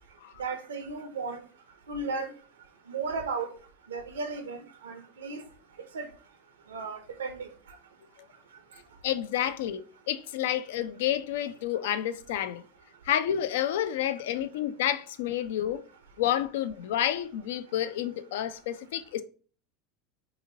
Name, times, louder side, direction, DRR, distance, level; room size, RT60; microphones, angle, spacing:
voice 1, 0.4-1.4 1.9-2.3 2.9-3.5 3.9-5.4 5.9-6.1 6.7-7.5, right 4 dB, 85° right, 0.6 m, -34 dB
voice 2, 9.0-12.6 13.0-15.8 16.2-19.2, left 11 dB, 75° left, 0.3 m, -29 dB
2.9 x 2.8 x 2.6 m
hypercardioid pair, 85°, 0 cm